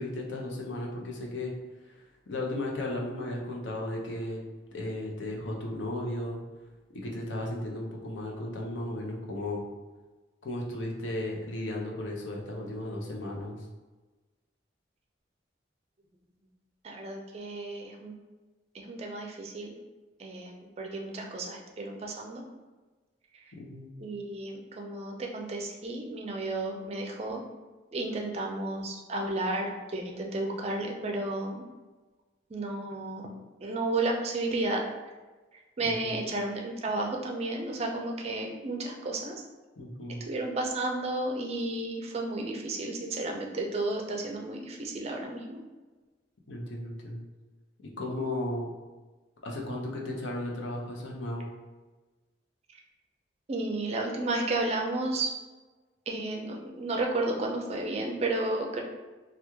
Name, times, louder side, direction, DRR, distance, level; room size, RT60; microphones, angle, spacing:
voice 1, 0.0-1.5 1.8-2.0 2.3-4.4 4.7-6.4 6.9-9.6 10.4-13.6 23.6-23.9 35.8-36.2 39.8-40.2 46.5-47.3 48.0-48.7 49.4-51.5, left 1 dB, 85° left, -1 dB, 0.6 m, -35 dB
voice 2, 16.8-18.1 18.7-19.7 20.2-22.4 24.0-27.4 27.9-31.6 32.5-33.3 33.6-34.8 35.8-39.3 40.3-45.6 53.5-55.3 56.1-58.8, right 2 dB, 35° right, 1 dB, 0.4 m, -32 dB
3.0 x 2.3 x 3.4 m, 1.2 s
head